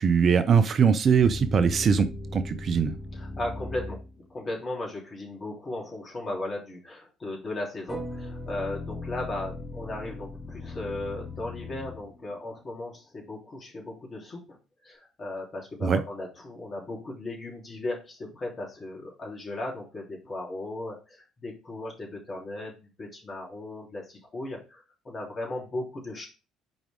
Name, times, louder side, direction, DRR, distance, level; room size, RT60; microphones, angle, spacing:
voice 1, 0.0-2.1 2.3-3.0 15.8-16.0, right 6 dB, 45° right, 11 dB, 0.6 m, -21 dB
sound 1, 1.2-4.3 7.9-12.5, left 2 dB, 15° left, 2.8 m, -38 dB
voice 2, 3.1-4.0 4.3-26.3, left 2 dB, 35° left, -2 dB, 3.4 m, -36 dB
6.1 x 5.0 x 3.6 m, 0.32 s
figure-of-eight pair, 55°, 0 cm